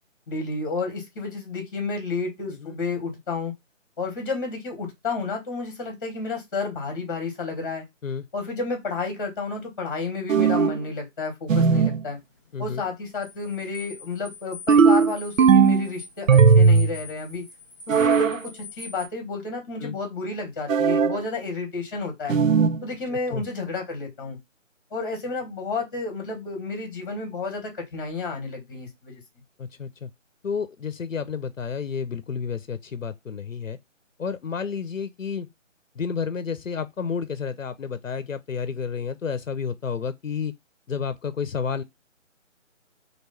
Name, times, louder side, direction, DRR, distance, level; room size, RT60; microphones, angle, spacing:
voice 1, 0.3-3.5 4.0-7.8 8.3-12.2 12.6-17.4 17.9-22.3 22.8-24.4 24.9-29.2, left 4 dB, 15° left, 1.6 m, -31 dB
sound 1, 10.3-10.8 11.5-12.0 14.7-15.9 16.3-16.9 17.9-18.4 20.7-21.2 22.3-22.8, right 5 dB, 75° right, 0.6 m, -17 dB
sound 2, 12.2-19.1, left 4 dB, 15° right, 0.7 m, -44 dB
voice 2, 29.6-30.1 30.4-33.8 34.2-35.5 36.0-40.5 40.9-41.8, left 6 dB, 75° left, 0.7 m, -30 dB
3.2 x 3.1 x 4.3 m
figure-of-eight pair, 160°, 39 cm